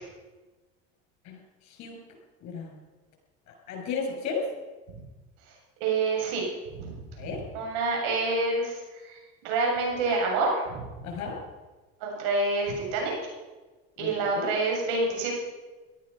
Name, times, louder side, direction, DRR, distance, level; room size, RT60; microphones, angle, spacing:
voice 1, 2.4-2.7 3.7-4.5 7.2-7.4 11.0-11.4 14.0-14.5, left 5 dB, 55° left, 2 dB, 6.8 m, -33 dB
voice 2, 5.8-6.4 6.7-6.9 7.2-10.8 12.0-13.1 14.0-15.3, right 3 dB, 75° right, 0 dB, 7.2 m, -27 dB
17.5 x 13.0 x 5.6 m, 1.2 s
supercardioid pair, 115°, 32 cm